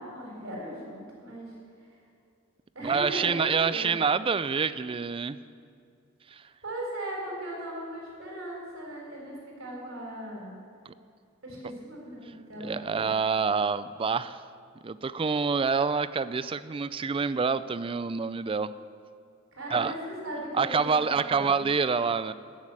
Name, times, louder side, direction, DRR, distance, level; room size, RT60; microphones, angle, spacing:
voice 1, 0.0-1.6 2.7-3.9 6.6-10.5 11.4-13.1 19.5-21.7, right 1 dB, 65° right, -2 dB, 4.1 m, -38 dB
voice 2, 2.8-5.4 6.3-6.4 12.6-14.4 14.8-18.7 19.7-19.9 20.5-22.3, right 5 dB, 25° right, 15 dB, 0.4 m, -27 dB
15.5 x 7.4 x 7.5 m, 2.3 s
head